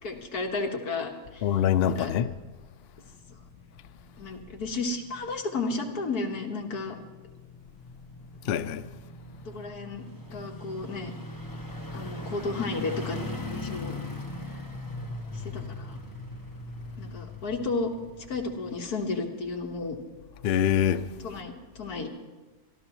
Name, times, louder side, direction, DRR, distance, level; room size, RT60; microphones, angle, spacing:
voice 1, 0.0-1.5 1.8-2.1 4.2-7.0 9.5-10.0 10.3-11.1 11.9-14.0 15.3-16.0 17.0-17.9 18.3-20.0 21.2-22.1, left 3 dB, 65° left, 2.0 m, -33 dB
voice 2, 1.4-2.3 8.5-8.8 11.9-12.0 20.4-21.1, left 9 dB, 85° left, 0.5 m, -24 dB
sound 1, 2.6-19.1 19.5-19.6, left 1 dB, 15° left, 1.0 m, -41 dB
25.0 x 13.0 x 3.1 m
omnidirectional pair, 1.7 m